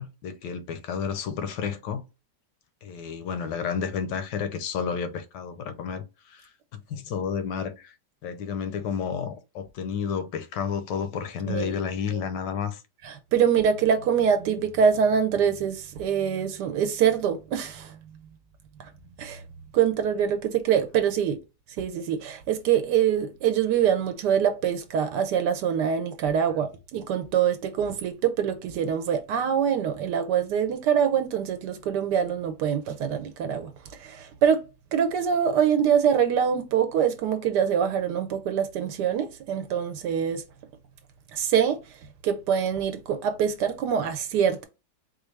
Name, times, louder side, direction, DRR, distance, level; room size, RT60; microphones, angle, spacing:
voice 1, 0.0-2.0 2.8-7.9 8.2-12.8, left 7 dB, 85° left, 1.3 m, -31 dB
voice 2, 11.5-11.8 12.1-12.2 13.0-18.0 18.8-18.9 19.2-19.4 19.7-21.4 21.8-33.7 34.0-34.6 34.9-40.4 41.3-41.8 42.2-44.6, right 8 dB, 80° right, 1.2 m, -24 dB
4.4 x 2.4 x 3.1 m
omnidirectional pair, 1.8 m